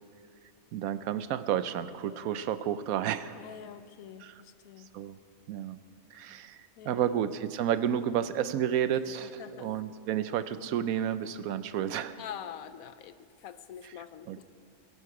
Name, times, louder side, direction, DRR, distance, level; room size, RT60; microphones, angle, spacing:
voice 1, 0.7-3.3 4.2-4.3 4.9-5.2 5.5-5.8 6.1-6.6 6.8-12.2 14.3-14.4, right 10 dB, 85° right, 13 dB, 1.1 m, -31 dB
voice 2, 3.3-4.9 6.8-7.1 9.4-9.7 12.2-14.4, left 9 dB, 80° left, 12 dB, 1.1 m, -45 dB
20.5 x 11.0 x 4.8 m, 2.3 s
omnidirectional pair, 1.5 m